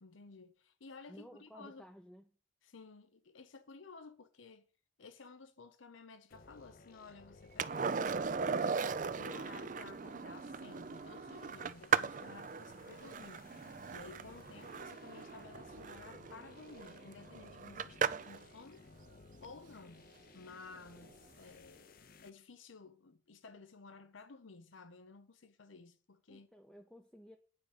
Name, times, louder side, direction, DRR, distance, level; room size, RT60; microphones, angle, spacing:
voice 1, 0.0-1.9 2.6-4.6 5.0-8.8 9.1-13.5 13.9-18.8 19.4-26.5, left 4 dB, 85° left, 0.8 m, -55 dB
voice 2, 1.1-2.2 26.3-27.4, equal, 5° left, 0.6 m, -55 dB
sound 1, 6.3-22.3, left 3 dB, 50° left, 0.7 m, -59 dB
Skateboard, 7.6-18.4 21.0-21.1, right 6 dB, 40° right, 0.5 m, -38 dB
9.7 x 4.9 x 7.2 m
head